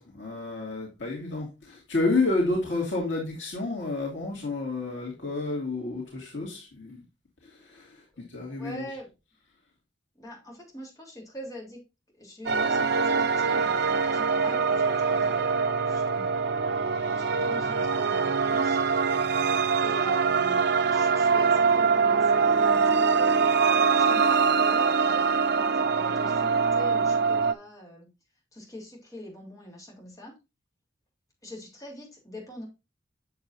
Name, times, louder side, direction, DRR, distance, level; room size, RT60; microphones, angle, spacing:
voice 1, 0.0-7.0 7.7-8.0 8.3-8.9, left 2 dB, 75° left, -2 dB, 2.4 m, -30 dB
voice 2, 8.6-9.1 10.2-11.8 12.2-16.3 17.2-18.9 19.8-20.6 20.9-23.4 24.0-28.1 28.5-30.3 31.4-32.6, equal, 20° left, -1 dB, 3.4 m, -43 dB
sound 1, 12.5-27.5, right 5 dB, 65° right, 0.7 m, -23 dB
7.9 x 7.0 x 2.6 m, 0.26 s
head